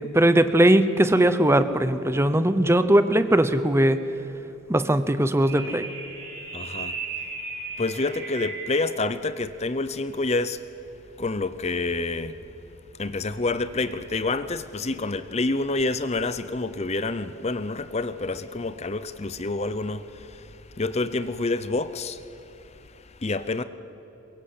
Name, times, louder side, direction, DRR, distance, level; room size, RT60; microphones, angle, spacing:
voice 1, 0.1-4.0 4.7-5.9, right 1 dB, 10° right, 0.8 m, -19 dB
sound 1, 5.5-9.0, right 4 dB, 50° right, 5.0 m, -36 dB
voice 2, 6.5-7.3 7.8-10.6 11.2-12.4 12.9-23.6, left 3 dB, 30° left, 0.6 m, -28 dB
22.5 x 22.0 x 8.6 m
head